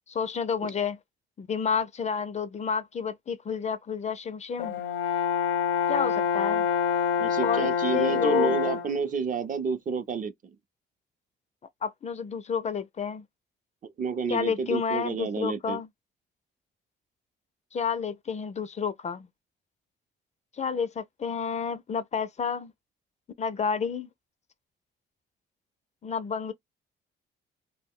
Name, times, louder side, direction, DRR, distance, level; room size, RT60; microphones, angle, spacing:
voice 1, 0.1-1.0 1.4-4.7 5.9-6.6 7.4-8.6 11.8-13.2 14.3-15.9 17.7-19.3 20.6-22.7 23.4-24.1 26.0-26.5, left 6 dB, 35° left, 0.4 m, -30 dB
Brass instrument, 4.6-9.0, left 7 dB, 90° left, 0.5 m, -26 dB
voice 2, 7.2-10.3 13.8-15.8, right 5 dB, 40° right, 0.5 m, -30 dB
2.2 x 2.1 x 3.5 m
cardioid pair, 90°, 20 cm